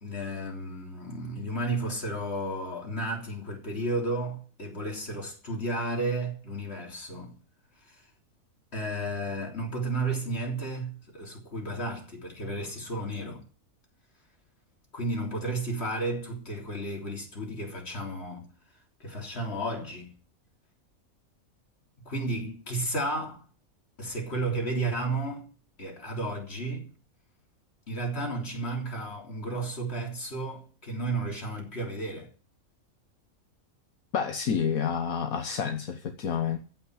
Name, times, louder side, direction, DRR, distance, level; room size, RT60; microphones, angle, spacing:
voice 1, 0.0-7.3 7.9-8.0 8.7-13.4 14.9-18.5 19.0-20.1 22.1-23.5 24.0-25.5 25.8-26.9 27.9-32.3, right 2 dB, 45° left, 3.8 m, -33 dB
voice 2, 34.1-36.6, left 7 dB, 75° left, 1.5 m, -29 dB
15.0 x 5.8 x 9.8 m
omnidirectional pair, 1.5 m